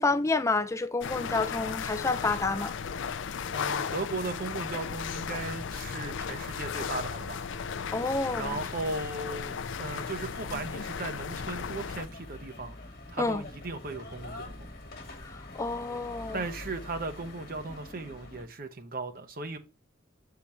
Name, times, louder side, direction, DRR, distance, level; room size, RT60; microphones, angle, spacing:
voice 1, 0.0-2.7 7.9-8.6 13.2-13.4 15.2-16.4, left 3 dB, 15° left, 0.4 m, -29 dB
sound 1, 1.0-12.1, left 6 dB, 75° left, 0.4 m, -35 dB
sound 2, 3.3-18.4, left 2 dB, 50° left, 1.2 m, -46 dB
voice 2, 3.5-7.5 8.3-12.8 13.1-14.7 16.3-19.6, right 3 dB, 45° right, 0.7 m, -37 dB
7.3 x 3.8 x 4.2 m
head